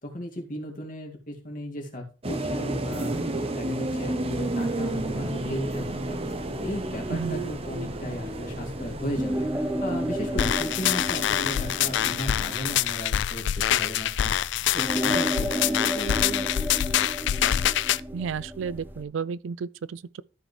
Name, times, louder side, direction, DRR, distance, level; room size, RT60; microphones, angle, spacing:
voice 1, 0.0-3.2 3.5-6.2 6.6-9.5 9.8-14.3 14.7-16.5, equal, 40° left, 2.2 m, -35 dB
sound 1, 2.2-12.8, right 2 dB, 30° right, 0.8 m, -32 dB
sound 2, 4.9-19.0, equal, 10° right, 0.4 m, -34 dB
sound 3, 10.4-18.0, left 11 dB, 65° left, 0.3 m, -25 dB
voice 2, 18.1-20.2, right 6 dB, 80° right, 0.4 m, -32 dB
13.5 x 5.1 x 3.2 m
head